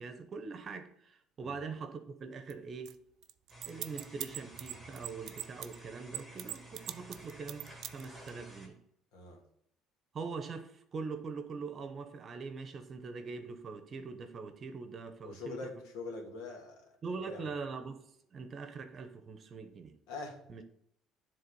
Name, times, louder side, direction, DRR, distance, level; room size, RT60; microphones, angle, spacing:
voice 1, 0.0-3.0 3.7-8.8 10.1-15.7 17.0-19.9 20.5-20.6, right 4 dB, 35° right, 0.9 m, -43 dB
sound 1, 2.5-2.6 2.9-3.0 3.2-5.8 6.1-8.3, right 12 dB, 60° right, 0.4 m, -40 dB
sound 2, 3.5-8.7, right 2 dB, ahead, 2.3 m, -52 dB
voice 2, 9.1-9.4 15.2-16.9 17.2-17.5 20.1-20.4, left 3 dB, 80° left, 1.9 m, -43 dB
9.9 x 3.6 x 5.4 m
cardioid pair, 115°, 0 cm